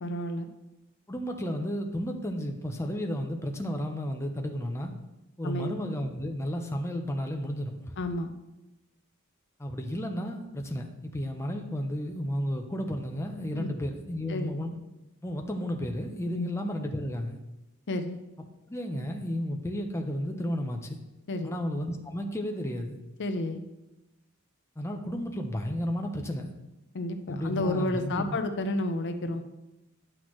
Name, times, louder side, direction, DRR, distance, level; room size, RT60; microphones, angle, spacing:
voice 1, 0.0-0.5 5.4-5.8 8.0-8.3 13.5-13.7 14.3-14.5 16.3-16.5 17.9-18.2 21.3-21.6 23.2-23.6 26.9-29.4, left 1 dB, 55° left, 7 dB, 0.6 m, -31 dB
voice 2, 1.1-4.9 5.4-7.9 9.6-14.7 15.2-17.4 18.7-21.0 21.4-23.0 24.8-26.5 27.3-28.4, equal, 15° left, 3 dB, 0.6 m, -33 dB
10.0 x 6.2 x 3.1 m, 0.98 s
head